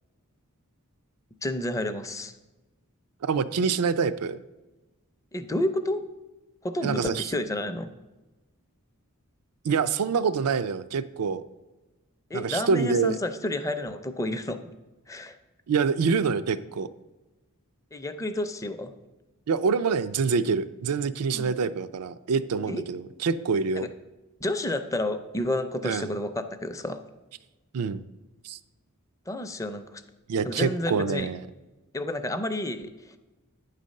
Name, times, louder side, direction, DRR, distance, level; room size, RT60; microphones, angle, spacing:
voice 1, 1.4-2.3 5.3-6.0 6.6-7.9 12.3-14.6 15.1-15.4 17.9-18.9 21.3-21.6 22.7-22.8 23.7-23.9 24.4-27.0 29.3-30.0 30.4-31.3 31.9-33.2, left 1 dB, 15° left, 9 dB, 0.4 m, -30 dB
voice 2, 3.2-4.4 6.8-7.2 9.6-11.4 12.3-13.2 15.7-16.9 19.5-23.9 25.8-26.1 27.7-28.0 28.4-28.6 30.3-31.4, right 5 dB, 85° right, 14 dB, 0.4 m, -26 dB
9.0 x 4.1 x 6.4 m, 1.1 s
head